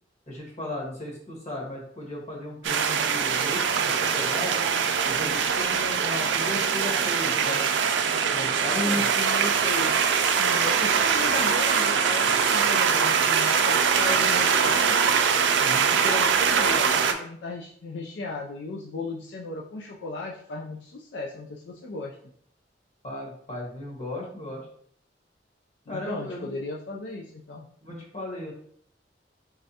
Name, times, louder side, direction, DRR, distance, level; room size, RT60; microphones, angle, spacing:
voice 1, 0.3-4.6 5.0-7.7 8.3-9.0 11.4-11.5 15.6-16.0 23.0-24.7 25.9-26.5 27.8-28.5, left 1 dB, 40° left, -4 dB, 1.3 m, -36 dB
sound 1, 2.6-17.1, right 6 dB, 90° right, 0.4 m, -23 dB
voice 2, 8.8-10.0 10.3-15.1 15.9-22.2 25.9-27.7, left 2 dB, 75° left, -1 dB, 0.4 m, -35 dB
3.5 x 3.2 x 2.7 m, 0.64 s
head